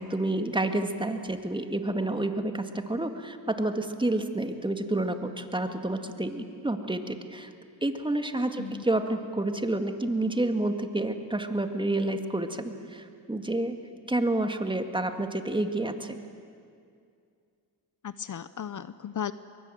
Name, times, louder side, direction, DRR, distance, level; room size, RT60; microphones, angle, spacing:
voice 1, 0.0-7.5 7.8-13.8 14.1-16.2, right 2 dB, 10° right, 7 dB, 2.0 m, -29 dB
voice 2, 18.0-19.3, left 8 dB, 50° left, 15 dB, 0.8 m, -35 dB
23.5 x 22.5 x 9.2 m, 2.3 s
cardioid pair, 85°, 40 cm